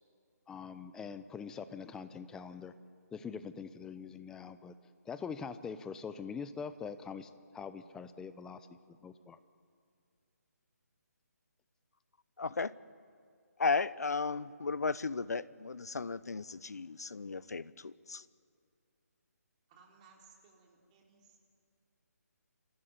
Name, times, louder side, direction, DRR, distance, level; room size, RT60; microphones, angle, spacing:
voice 1, 0.5-2.7 3.1-4.7 5.1-8.6 9.0-9.4, left 6 dB, 5° left, 12 dB, 0.6 m, -43 dB
voice 2, 12.4-12.7 13.6-18.2, left 4 dB, 70° left, 19 dB, 0.8 m, -35 dB
voice 3, 19.7-21.4, right 5 dB, 25° right, 0 dB, 3.8 m, -62 dB
28.0 x 14.5 x 9.7 m, 2.3 s
figure-of-eight pair, 145°, 9 cm